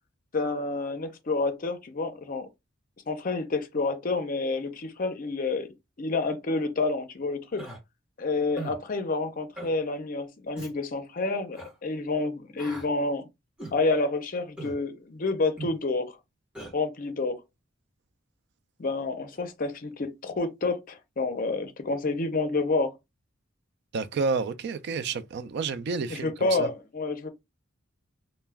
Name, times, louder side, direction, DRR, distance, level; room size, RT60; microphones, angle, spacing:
voice 1, 0.3-2.5 3.1-5.7 6.0-7.6 8.2-13.2 13.7-16.2 16.7-17.4 18.8-22.9 26.1-27.3, left 3 dB, 45° left, 0.5 m, -29 dB
Human voice, 7.6-7.8 8.6-8.8 9.5-9.7 10.5-10.7 11.5-11.7 12.6-12.9 13.6-13.8 14.6-14.8 15.6-15.8 16.5-16.7, right 2 dB, 5° right, 0.9 m, -39 dB
voice 2, 23.9-26.7, right 4 dB, 55° right, 0.3 m, -30 dB
2.2 x 2.1 x 3.3 m
head